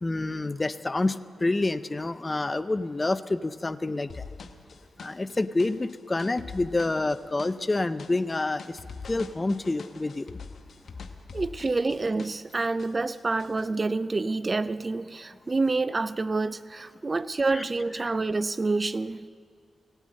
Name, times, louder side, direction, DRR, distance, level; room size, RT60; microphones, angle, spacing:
voice 1, 0.0-4.3 5.0-10.4 17.5-17.6 18.0-18.1, left 2 dB, 30° left, 14 dB, 0.5 m, -28 dB
sound 1, 4.1-12.5 12.8-13.6, left 5 dB, 70° left, 0.9 m, -43 dB
voice 2, 11.3-19.3, right 3 dB, 35° right, 16 dB, 0.4 m, -28 dB
16.5 x 9.0 x 7.6 m, 2.2 s
cardioid pair, 55°, 0 cm